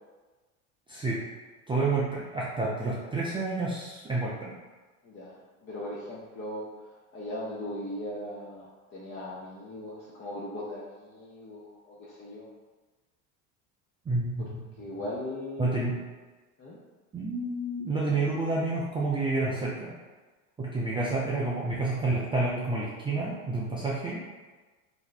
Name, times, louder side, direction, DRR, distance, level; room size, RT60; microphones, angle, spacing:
voice 1, 0.9-1.2 1.7-4.5 14.1-14.5 15.6-16.0 17.1-19.9 20.6-24.2, right 3 dB, 15° right, -6 dB, 0.3 m, -29 dB
voice 2, 5.0-12.5 14.4-14.5 14.8-15.9 16.6-16.8, left 1 dB, 30° left, -6 dB, 0.7 m, -39 dB
2.7 x 2.1 x 3.9 m, 1.3 s
hypercardioid pair, 85°, 42 cm